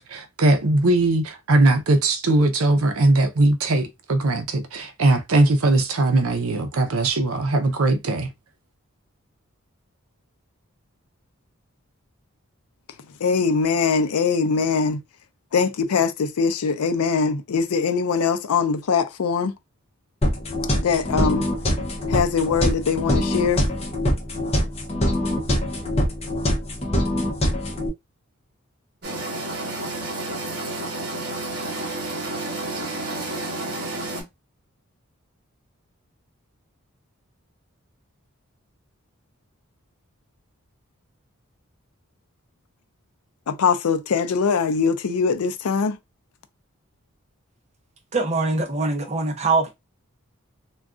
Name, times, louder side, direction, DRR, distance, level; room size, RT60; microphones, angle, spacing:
voice 1, 0.0-8.3, right 2 dB, 75° right, 0.6 m, -20 dB
voice 2, 13.2-15.0 15.5-19.5 20.8-21.5 22.1-23.6 43.5-46.0, left 5 dB, 90° left, 0.5 m, -22 dB
sound 1, 20.2-27.9, left 1 dB, 25° left, 0.6 m, -24 dB
sound 2, 29.0-34.2, right 2 dB, 50° right, 1.2 m, -30 dB
voice 3, 48.1-49.7, right 3 dB, 30° right, 0.6 m, -23 dB
2.4 x 2.3 x 3.6 m
head